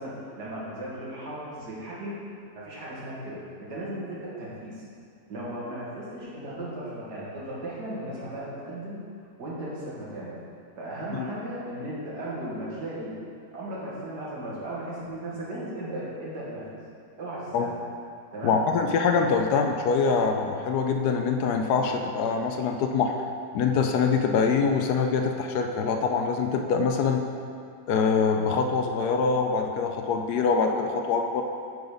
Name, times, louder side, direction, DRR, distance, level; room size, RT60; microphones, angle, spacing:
voice 1, 0.0-2.2 2.5-4.8 5.3-9.0 9.4-10.3 10.8-13.1 13.5-16.8 17.2-17.8 18.3-18.6 19.3-19.4, right 1 dB, 70° right, -7 dB, 2.2 m, -36 dB
voice 2, 18.4-23.1 23.5-27.2 27.9-31.4, left 5 dB, 75° left, 4 dB, 1.0 m, -24 dB
8.8 x 3.9 x 5.2 m, 2.3 s
omnidirectional pair, 1.9 m